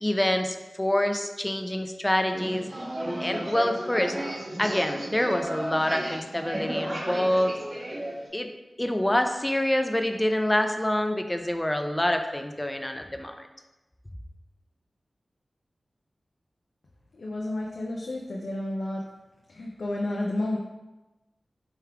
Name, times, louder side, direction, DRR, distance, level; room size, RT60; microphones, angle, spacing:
voice 1, 0.0-2.7 3.2-4.2 4.6-7.6 8.3-8.5 8.8-13.5, left 1 dB, 20° left, 6 dB, 0.4 m, -26 dB
sound 1, 2.3-8.3, right 1 dB, 50° right, 0.9 m, -33 dB
voice 2, 17.1-19.0 19.5-20.6, left 1 dB, 85° left, -2 dB, 0.4 m, -31 dB
3.5 x 3.3 x 3.4 m, 1.0 s
cardioid pair, 50°, 0 cm